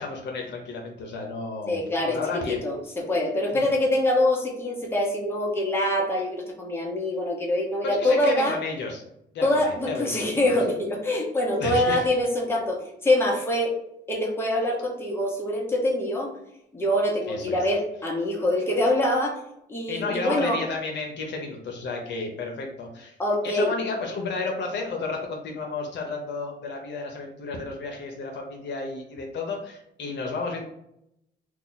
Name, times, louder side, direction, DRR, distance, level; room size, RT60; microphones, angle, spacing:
voice 1, 0.0-1.8 2.1-2.6 3.5-3.7 8.0-9.0 9.3-10.6 11.6-12.0 17.3-17.7 19.9-23.2 23.4-30.6, left 3 dB, 65° left, 1 dB, 0.7 m, -32 dB
voice 2, 1.7-8.6 9.4-13.7 14.1-16.3 16.7-19.4 19.7-20.6 23.2-23.7, left 1 dB, 10° left, -2 dB, 1.0 m, -24 dB
2.8 x 2.3 x 3.9 m, 0.78 s
cardioid pair, 90°, 20 cm